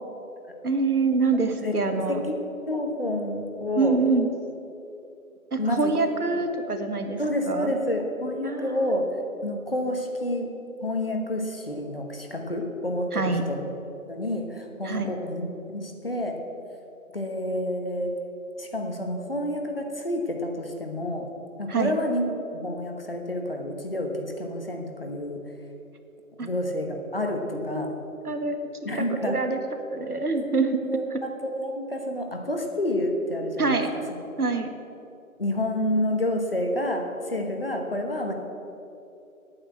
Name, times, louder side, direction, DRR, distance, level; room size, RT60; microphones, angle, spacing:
voice 1, 0.6-2.2 3.8-4.3 5.5-7.2 7.5-7.8 8.4-8.9 13.1-13.4 14.8-15.1 21.7-21.9 26.4-26.5 27.5-27.8 28.2-28.7 29.1-29.6 29.9-30.8 31.1-31.2 33.6-33.9 34.4-34.7, right 3 dB, 85° right, 6 dB, 1.6 m, -25 dB
voice 2, 2.7-4.0 5.6-5.9 7.2-9.1 9.4-10.5 10.8-13.7 14.1-16.4 17.1-18.1 18.6-21.3 21.6-25.4 26.4-28.0 28.8-29.4 30.9-33.8 35.4-38.3, left 1 dB, 40° left, 3 dB, 1.3 m, -29 dB
8.9 x 8.6 x 8.6 m, 2.8 s
figure-of-eight pair, 180°, 44 cm